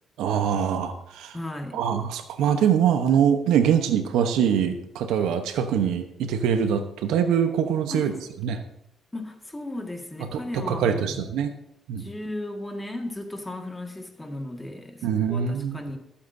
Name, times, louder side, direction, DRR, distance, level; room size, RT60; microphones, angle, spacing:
voice 1, 0.2-1.4 1.7-8.1 8.4-8.6 10.3-11.5 11.9-12.1 15.0-15.8, right 8 dB, 90° right, 1.0 m, -23 dB
voice 2, 1.3-1.8 7.9-8.2 9.1-11.2 12.0-16.0, left 1 dB, 15° left, 1.9 m, -35 dB
19.5 x 8.6 x 2.7 m
cardioid pair, 90°, 0 cm